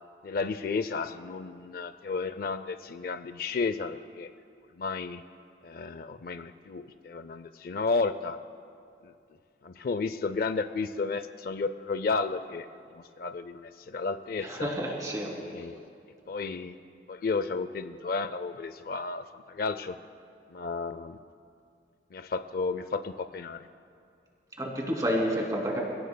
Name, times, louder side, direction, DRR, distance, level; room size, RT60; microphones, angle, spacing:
voice 1, 0.2-4.3 4.8-5.2 5.6-8.4 9.0-9.1 9.6-12.7 13.2-14.7 15.4-15.9 16.3-16.8 17.1-20.0 20.5-21.2 22.1-23.6, left 4 dB, 55° left, 11 dB, 0.4 m, -32 dB
voice 2, 14.4-15.3 24.6-25.8, equal, 20° right, -1 dB, 2.6 m, -29 dB
28.5 x 17.0 x 2.2 m, 2.4 s
head